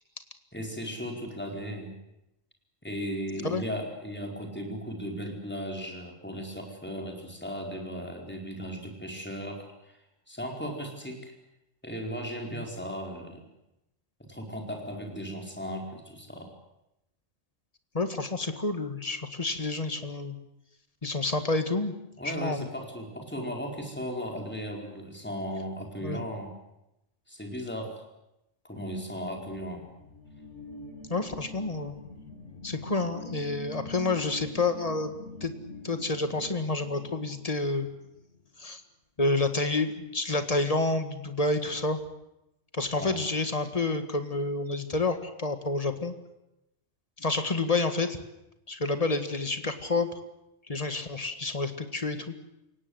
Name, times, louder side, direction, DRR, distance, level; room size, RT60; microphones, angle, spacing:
voice 1, 0.5-1.9 2.8-10.0 10.3-11.3 11.8-13.5 14.3-16.5 22.2-26.5 27.3-28.0 28.6-29.8 43.0-43.2, equal, 10° left, 2 dB, 4.5 m, -36 dB
voice 2, 17.9-20.4 21.0-21.9 22.2-22.7 26.0-26.2 31.1-32.0 32.6-35.1 35.4-35.5 35.8-37.9 38.6-38.8 39.2-42.0 42.7-46.1 47.2-48.2 48.7-50.1 50.7-52.3, left 3 dB, 30° left, 8 dB, 2.0 m, -29 dB
sound 1, 29.4-38.4, left 1 dB, 75° left, 3.1 m, -45 dB
29.0 x 17.5 x 8.0 m, 0.88 s
omnidirectional pair, 1.3 m